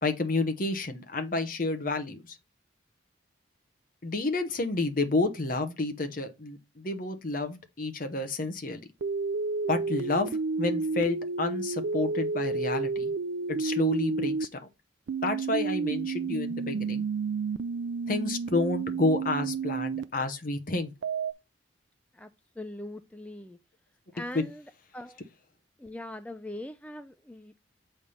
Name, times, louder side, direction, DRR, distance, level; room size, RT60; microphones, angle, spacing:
voice 1, 0.0-2.4 4.0-8.8 9.7-13.1 13.5-14.5 15.2-17.0 18.1-20.9, left 2 dB, 45° left, 0.9 m, -30 dB
sound 1, 9.0-14.5 15.1-20.0 21.0-21.3, right 4 dB, 70° right, 0.4 m, -31 dB
voice 2, 22.6-23.6 24.1-24.6 24.9-25.2 25.8-27.6, left 1 dB, 5° left, 0.3 m, -41 dB
7.2 x 3.3 x 5.4 m
head